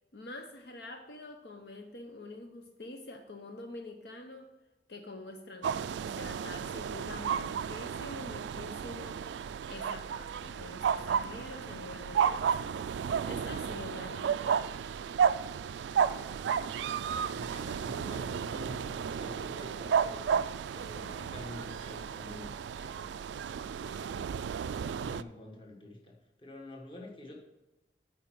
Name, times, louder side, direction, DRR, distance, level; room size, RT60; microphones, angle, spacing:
voice 1, 0.1-4.5 4.9-14.7, left 2 dB, 70° left, 5 dB, 0.7 m, -46 dB
sound 1, 5.6-25.2, right 7 dB, 90° right, 0.3 m, -33 dB
voice 2, 16.5-16.9 17.3-23.1 23.7-24.4 24.7-27.4, left 2 dB, 30° left, 0 dB, 1.3 m, -48 dB
8.8 x 4.6 x 6.0 m, 1.1 s
head